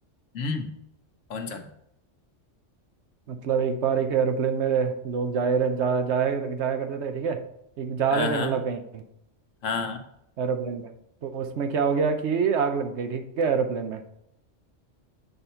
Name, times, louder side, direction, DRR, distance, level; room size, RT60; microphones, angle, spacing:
voice 1, 0.3-0.7 1.3-1.7 8.1-8.6 9.6-10.0, left 4 dB, 80° left, 5 dB, 1.2 m, -30 dB
voice 2, 3.3-7.4 7.8-9.0 10.4-10.9 11.2-14.0, right 6 dB, 65° right, 7 dB, 1.0 m, -26 dB
7.9 x 4.1 x 4.4 m, 0.77 s
omnidirectional pair, 1.3 m